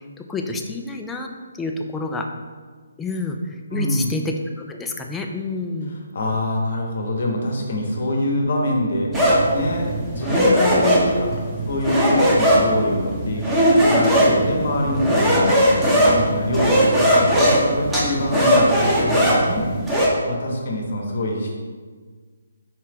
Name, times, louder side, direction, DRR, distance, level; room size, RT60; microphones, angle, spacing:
voice 1, 0.0-2.3 3.0-6.0 16.5-16.6, left 3 dB, 10° left, 2 dB, 0.3 m, -29 dB
voice 2, 3.7-4.1 6.1-9.1 9.5-11.3 11.7-13.4 13.7-19.7 20.3-21.5, left 1 dB, 55° left, 0 dB, 0.8 m, -25 dB
sound 1, 9.1-20.1, equal, 5° right, 0.7 m, -18 dB
4.4 x 2.7 x 3.4 m, 1.5 s
figure-of-eight pair, 140°, 0 cm